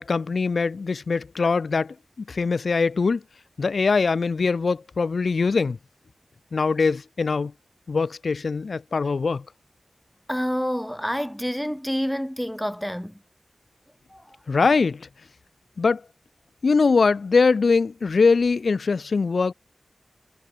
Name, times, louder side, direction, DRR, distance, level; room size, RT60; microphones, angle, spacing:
voice 1, 0.0-1.9 2.3-3.2 3.6-5.8 6.5-7.5 7.9-9.4 14.5-15.1 15.8-16.0 16.6-19.5, left 4 dB, 75° left, 0.9 m, -22 dB
voice 2, 10.3-13.2 14.1-14.4, equal, 5° left, 1.4 m, -28 dB
wide cardioid pair, 70°, 0 cm